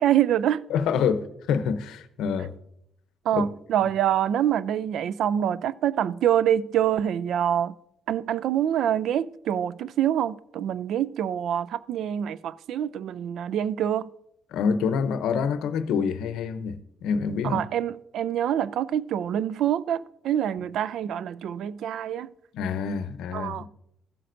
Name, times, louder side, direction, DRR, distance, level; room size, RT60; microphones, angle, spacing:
voice 1, 0.0-0.6 3.3-7.7 8.1-14.1 17.4-22.3 23.3-23.7, right 10 dB, 75° right, 0.3 m, -25 dB
voice 2, 0.7-2.5 3.3-3.5 14.5-16.8 17.0-17.6 22.5-23.7, left 6 dB, 85° left, 0.6 m, -26 dB
14.5 x 7.6 x 2.6 m
cardioid pair, 90°, 0 cm